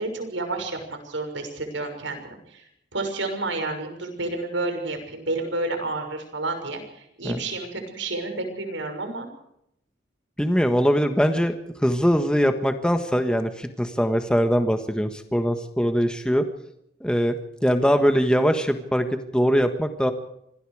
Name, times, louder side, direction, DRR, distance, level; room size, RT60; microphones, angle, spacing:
voice 1, 0.0-2.6 2.9-9.3, right 2 dB, 75° right, 5 dB, 6.3 m, -30 dB
voice 2, 10.4-11.5 11.8-16.4 17.0-20.1, equal, 5° left, 7 dB, 1.5 m, -22 dB
26.5 x 21.0 x 5.0 m, 0.78 s
head